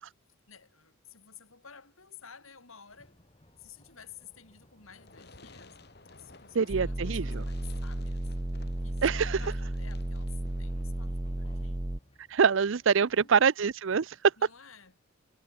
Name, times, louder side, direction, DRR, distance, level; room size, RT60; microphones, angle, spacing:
voice 1, 0.5-3.2 3.6-5.8 6.1-8.3 8.8-11.9 13.0-13.3 14.4-15.0, left 7 dB, 75° left, 3.9 m, -53 dB
sound 1, 2.9-13.3, left 1 dB, 25° left, 3.5 m, -61 dB
Fireworks, 4.9-10.9, left 3 dB, 50° left, 4.7 m, -55 dB
voice 2, 6.5-7.4 9.0-9.4 12.3-14.2, right 6 dB, 60° right, 0.5 m, -25 dB
sound 2, 6.7-12.0, right 1 dB, 20° right, 0.8 m, -33 dB
head